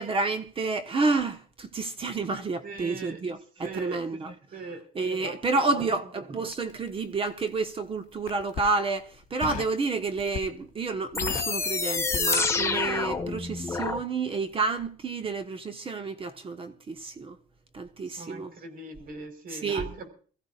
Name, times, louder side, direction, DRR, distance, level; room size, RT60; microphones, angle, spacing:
voice 1, 0.0-17.4 17.7-18.5 19.5-19.9, right 3 dB, 30° right, 1.3 m, -30 dB
voice 2, 2.6-3.2 3.6-4.0 4.5-4.8 5.2-5.7 18.2-20.1, right 4 dB, 60° right, 4.6 m, -40 dB
Crackle, 6.5-7.6 8.1-8.7 9.4-9.8 10.2-10.7 10.9-12.9 13.1-13.4, left 8 dB, 50° left, 2.2 m, -37 dB
sound 1, 11.1-14.0, left 4 dB, 15° left, 1.5 m, -28 dB
24.5 x 15.0 x 2.5 m
cardioid pair, 110°, 17 cm